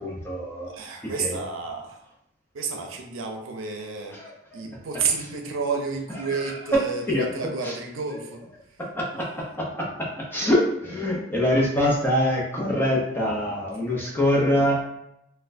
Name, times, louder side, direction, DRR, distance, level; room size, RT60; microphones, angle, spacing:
voice 1, 0.0-0.7 1.0-1.3 4.1-4.6 6.3-6.4 6.7-6.8 7.1-7.3 7.6-7.8 8.8-14.8, equal, 10° left, -4 dB, 0.7 m, -24 dB
voice 2, 0.7-2.0 2.5-4.2 4.5-8.4, right 4 dB, 90° right, 2 dB, 0.5 m, -30 dB
4.1 x 2.2 x 2.6 m, 0.82 s
head